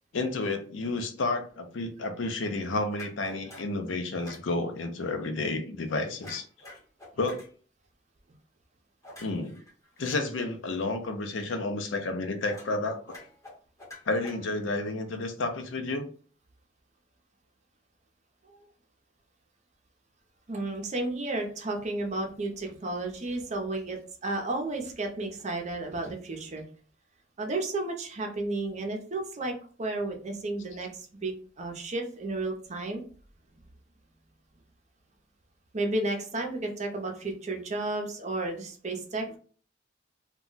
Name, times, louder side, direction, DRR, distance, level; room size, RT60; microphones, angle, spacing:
voice 1, 0.1-6.5 7.2-7.4 9.2-9.6 10.0-13.0 14.1-16.0, left 2 dB, 80° left, 6 dB, 0.5 m, -31 dB
sound 1, 2.9-3.8 4.2-4.5 6.2-7.5 9.0-10.2 12.5-12.8 13.1-14.8, left 1 dB, 15° left, 0.9 m, -47 dB
voice 2, 20.5-26.6 27.4-33.0 35.7-39.4, right 2 dB, 40° right, 3 dB, 0.6 m, -32 dB
2.3 x 2.1 x 3.8 m, 0.43 s
head